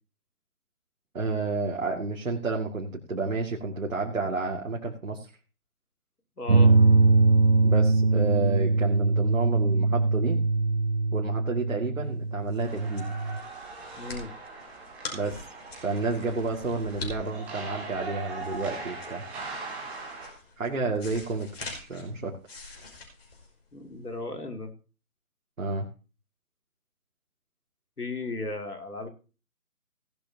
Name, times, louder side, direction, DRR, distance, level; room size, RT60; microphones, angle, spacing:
voice 1, 1.1-5.3 7.6-10.4 11.1-13.1 15.1-15.4 15.8-19.2 20.6-22.4 25.6-25.9, right 3 dB, 60° right, 0 dB, 2.3 m, -31 dB
voice 2, 6.4-6.7 14.0-14.3 23.7-24.7 28.0-29.1, left 2 dB, 85° left, 5 dB, 3.0 m, -35 dB
sound 1, 6.5-13.4, right 3 dB, 35° right, 0.7 m, -22 dB
sound 2, 12.1-24.1, left 3 dB, 40° left, 5.5 m, -44 dB
sound 3, 12.6-20.3, right 3 dB, 5° right, 1.2 m, -40 dB
17.5 x 12.5 x 2.9 m, 0.34 s
figure-of-eight pair, 155°, 45 cm